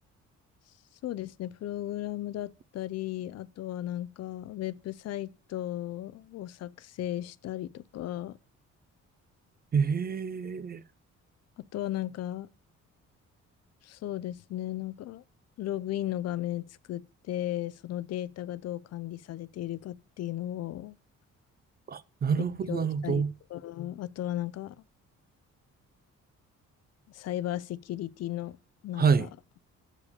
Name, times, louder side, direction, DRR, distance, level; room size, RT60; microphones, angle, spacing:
voice 1, 1.0-8.4 11.6-12.5 13.8-15.2 15.6-21.0 22.4-24.8 27.1-28.6 28.8-29.3, left 13 dB, 60° left, 0.4 m, -35 dB
voice 2, 9.7-10.8 21.9-23.3 29.0-29.3, right 6 dB, 30° right, 0.4 m, -27 dB
6.9 x 4.8 x 6.6 m
cardioid pair, 90°, 30 cm